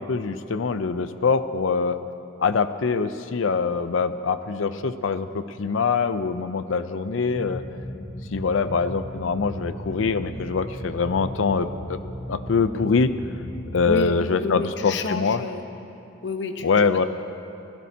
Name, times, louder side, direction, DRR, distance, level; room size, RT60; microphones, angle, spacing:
voice 1, 0.0-2.0 2.4-7.6 8.3-12.0 12.3-13.1 13.7-15.4 16.6-17.1, left 5 dB, 90° left, 12 dB, 0.6 m, -24 dB
sound 1, 7.2-14.1, equal, 35° left, 1.2 m, -36 dB
voice 2, 13.8-15.6 16.2-16.7, left 3 dB, 65° left, 6 dB, 1.0 m, -29 dB
23.0 x 16.5 x 2.8 m, 2.8 s
head